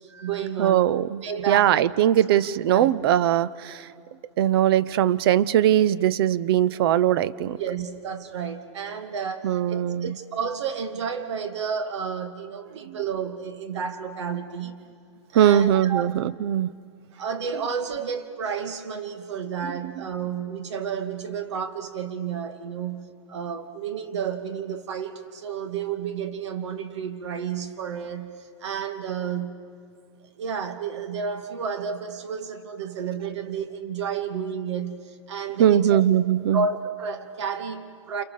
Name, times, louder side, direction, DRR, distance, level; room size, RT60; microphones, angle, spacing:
voice 1, 0.0-0.9 1.2-1.7 2.7-2.9 7.6-14.8 15.3-16.1 17.1-29.6 30.4-36.0 36.5-38.2, right 6 dB, 65° right, 7 dB, 2.7 m, -31 dB
voice 2, 0.6-3.9 4.4-7.6 9.4-10.1 12.9-13.0 15.3-16.7 35.6-36.6, right 11 dB, 50° right, 17 dB, 0.8 m, -21 dB
29.5 x 28.5 x 6.8 m, 2.3 s
hypercardioid pair, 145°, 16 cm